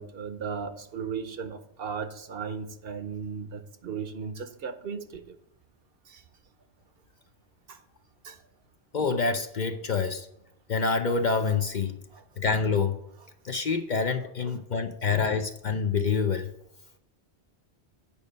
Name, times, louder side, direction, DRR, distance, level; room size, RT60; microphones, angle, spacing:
voice 1, 0.0-5.4 6.1-6.2 7.7-7.8 8.2-8.4 12.1-12.3 14.5-14.6, right 6 dB, 60° right, 0.9 m, -36 dB
voice 2, 8.9-10.3 10.7-11.9 12.4-13.0 13.4-16.5, left 5 dB, 50° left, 0.6 m, -26 dB
8.6 x 5.2 x 5.1 m
omnidirectional pair, 1.1 m